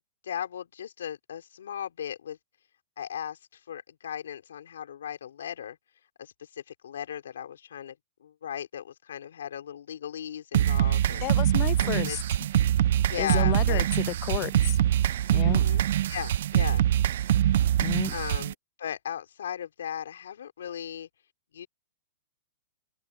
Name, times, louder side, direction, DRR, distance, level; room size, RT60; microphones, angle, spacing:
voice 1, 0.2-2.4 3.0-5.8 6.2-11.2 11.8-12.2 13.1-13.8 15.4-15.8 16.1-16.8 18.1-21.1 21.5-21.7, left 9 dB, 85° left, 3.7 m, -37 dB
sound 1, 10.5-18.5, right 11 dB, 65° right, 0.4 m, -24 dB
voice 2, 11.2-12.2 13.2-14.8 15.3-15.6 17.8-18.1, left 19 dB, 35° left, 0.5 m, -32 dB
open air
hypercardioid pair, 140°, 0 cm